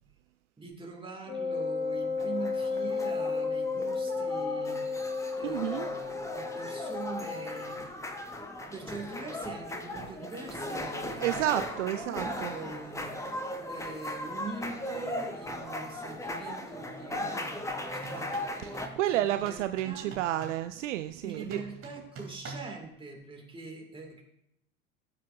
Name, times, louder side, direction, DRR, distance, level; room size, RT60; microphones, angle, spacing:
voice 1, 0.6-4.8 5.3-7.8 8.7-11.5 11.8-20.1 21.2-24.2, right 3 dB, 10° right, 1 dB, 2.5 m, -43 dB
Wind instrument woodwind instrument, 1.3-7.9, left 4 dB, 25° left, 3.7 m, -33 dB
sound 1, 1.9-18.9, left 1 dB, 5° left, 1.2 m, -38 dB
voice 2, 5.4-5.9 11.2-12.5 19.0-21.6, right 13 dB, 60° right, 11 dB, 0.6 m, -30 dB
sound 2, 17.9-18.6 19.3-20.7 21.3-22.8, right 4 dB, 35° right, 3.1 m, -45 dB
18.5 x 7.5 x 2.7 m, 0.80 s
figure-of-eight pair, 70°, 42 cm